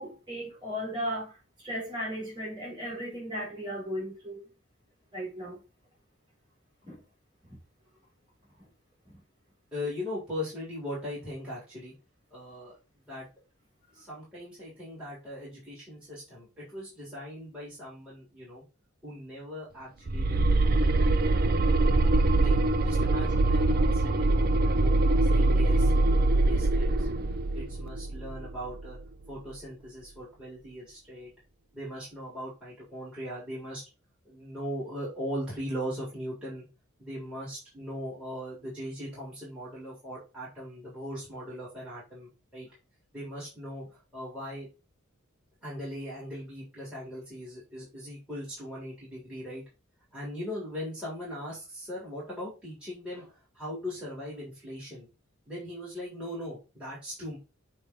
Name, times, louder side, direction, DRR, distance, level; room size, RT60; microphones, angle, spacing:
voice 1, 0.0-4.4 5.1-5.6 6.8-7.0, equal, 20° right, 4.3 m, -36 dB
voice 2, 9.7-11.9 12.3-12.8 13.1-13.3 13.9-18.6 19.0-21.2 21.4-21.6 22.4-25.9 26.4-27.1 27.5-29.0 29.3-31.3 31.7-33.8 34.2-36.6 37.0-42.7 43.1-44.7 45.6-49.6 50.1-55.1 55.5-57.4, equal, 5° right, 3.9 m, -39 dB
sound 1, 20.1-29.0, right 2 dB, 45° right, 0.6 m, -24 dB
8.3 x 3.4 x 4.2 m
head